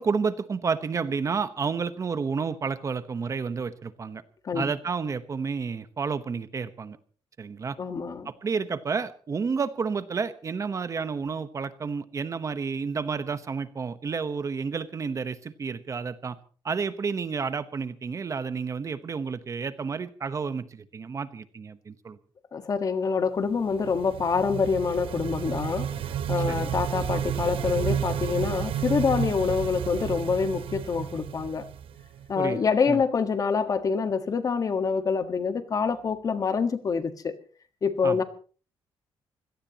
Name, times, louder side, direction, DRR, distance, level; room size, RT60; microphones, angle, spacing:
voice 1, 0.0-4.2 4.5-7.0 7.4-7.8 8.2-16.4 16.6-22.2 26.5-26.7 32.3-33.0 38.0-38.2, right 5 dB, 35° right, 12 dB, 1.0 m, -30 dB
voice 2, 7.8-8.3 22.5-26.0 26.3-31.6 32.3-37.3 37.8-38.2, left 5 dB, 40° left, 9 dB, 1.5 m, -26 dB
sound 1, 23.6-32.3, right 9 dB, 70° right, 1.0 m, -31 dB
25.5 x 17.5 x 3.0 m, 0.40 s
cardioid pair, 130°, 9 cm